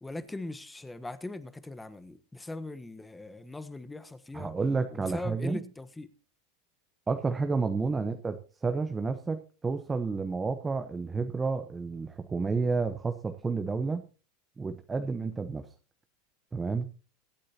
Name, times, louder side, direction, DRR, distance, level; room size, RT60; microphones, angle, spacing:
voice 1, 0.0-4.5 4.9-6.1 7.8-7.9, left 2 dB, 10° left, 1.1 m, -40 dB
voice 2, 4.3-5.6 7.1-14.0 14.6-15.7 16.5-16.9, right 4 dB, 15° right, 1.0 m, -30 dB
24.0 x 8.5 x 2.9 m
supercardioid pair, 130°, 0 cm